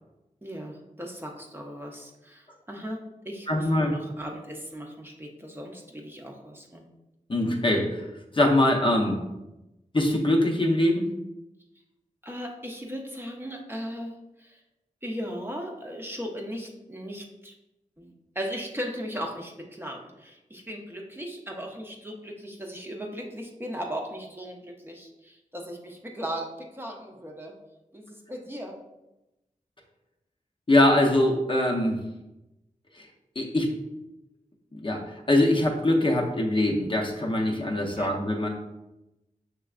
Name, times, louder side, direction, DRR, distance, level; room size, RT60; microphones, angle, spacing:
voice 1, 0.4-6.9 12.2-14.6 15.0-17.5 18.0-27.6 27.9-28.8 37.9-38.1, equal, 15° right, 0 dB, 0.7 m, -37 dB
voice 2, 3.5-3.9 7.3-8.0 8.3-9.2 9.9-11.0 30.7-32.0 33.0-33.1 33.4-33.7 34.7-38.5, left 1 dB, 40° left, 0 dB, 0.7 m, -23 dB
5.9 x 3.3 x 2.4 m, 0.95 s
wide cardioid pair, 65°, 14 cm